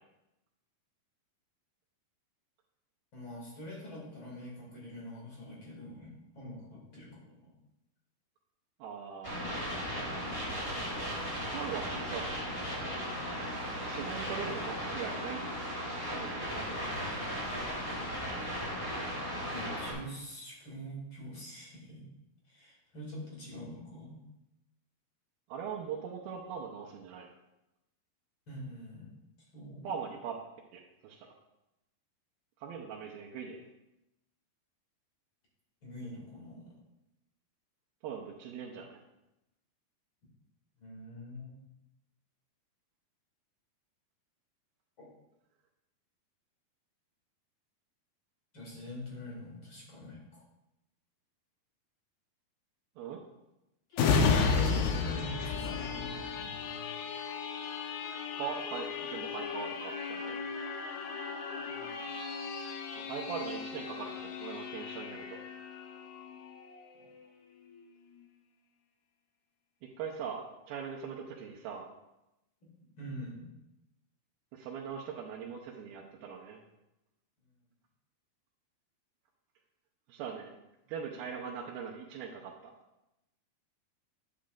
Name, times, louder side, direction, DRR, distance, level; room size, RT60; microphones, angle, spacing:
voice 1, 3.1-7.6 19.3-22.1 22.5-24.2 28.5-29.1 29.5-29.9 35.8-36.8 40.8-41.6 45.0-45.1 48.5-50.4 53.9-56.9 61.7-61.9 66.9-67.1 73.0-73.5, equal, 35° left, -4 dB, 2.6 m, -45 dB
voice 2, 8.8-9.4 11.4-12.3 13.9-15.5 16.2-16.9 25.5-27.3 29.8-30.3 30.7-31.3 32.6-33.6 38.0-39.0 53.0-53.2 58.3-60.4 63.0-65.4 69.8-71.9 74.5-76.6 80.1-80.5 80.9-82.7, right 7 dB, 85° right, -3 dB, 2.6 m, -41 dB
sound 1, 9.2-19.9, equal, 5° left, 2.8 m, -36 dB
sound 2, 53.9-67.3 67.7-67.9, left 5 dB, 85° left, 2.8 m, -34 dB
10.5 x 8.5 x 2.5 m, 0.92 s
omnidirectional pair, 4.4 m